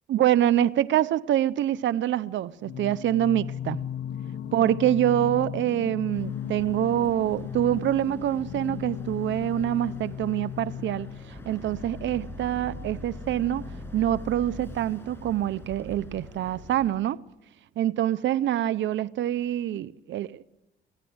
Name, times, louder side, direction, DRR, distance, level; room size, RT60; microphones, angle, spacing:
voice 1, 0.1-3.8 4.5-13.7 13.9-17.2 17.8-20.4, right 12 dB, 70° right, 0.7 m, -25 dB
Singing, 2.6-11.5, left 9 dB, 55° left, 1.4 m, -36 dB
Boat Water vehicle, 6.1-16.9, left 1 dB, 10° left, 6.7 m, -43 dB
22.5 x 15.5 x 8.0 m
cardioid pair, 90°, 20 cm